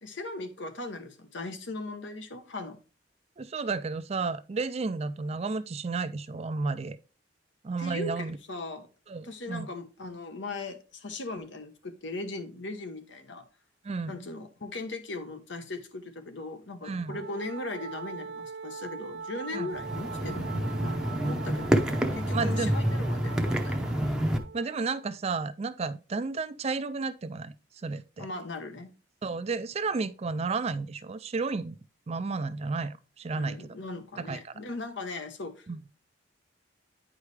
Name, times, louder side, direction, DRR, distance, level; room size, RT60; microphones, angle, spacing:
voice 1, 0.0-2.8 7.8-8.9 9.2-13.5 14.1-23.9 28.2-28.9 33.3-35.7, left 2 dB, 70° left, 1.1 m, -39 dB
voice 2, 3.4-7.0 7.6-8.4 9.1-9.7 13.8-14.1 16.8-17.1 19.5-19.7 22.3-22.7 24.5-27.5 27.8-28.3 29.2-31.8 32.1-33.7 34.2-34.6 35.7-35.8, right 4 dB, 35° right, 0.4 m, -32 dB
Wind instrument woodwind instrument, 17.1-25.1, right 5 dB, 60° right, 0.7 m, -41 dB
sound 1, 19.7-24.4, equal, 5° right, 0.7 m, -28 dB
9.6 x 4.8 x 3.2 m
head